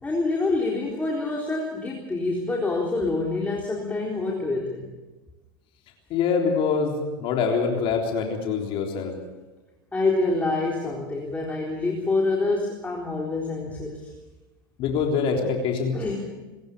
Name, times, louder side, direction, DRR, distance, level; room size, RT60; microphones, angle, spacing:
voice 1, 0.0-4.9 9.9-14.1 15.4-15.5 15.9-16.2, left 3 dB, 15° left, -2 dB, 3.9 m, -26 dB
voice 2, 6.1-9.1 14.8-16.2, left 5 dB, 50° left, 1 dB, 3.7 m, -25 dB
26.5 x 15.0 x 6.8 m, 1.2 s
hypercardioid pair, 95°, 11 cm